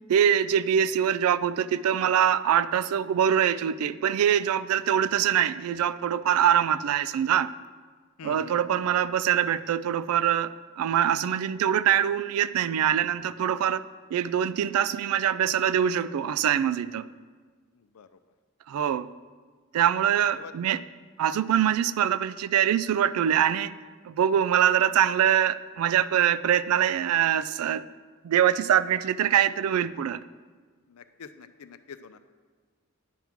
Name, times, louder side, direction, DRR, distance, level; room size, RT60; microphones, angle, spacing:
voice 1, 0.1-7.5 8.2-13.8 14.1-17.1 18.7-19.1 19.7-20.8 21.2-23.8 24.0-27.8 28.2-30.2, right 9 dB, 85° right, 16 dB, 0.3 m, -24 dB
voice 2, 8.2-8.6 17.9-18.1 20.3-20.5 30.9-32.2, left 6 dB, 85° left, 11 dB, 0.4 m, -44 dB
10.0 x 3.6 x 5.9 m, 1.5 s
head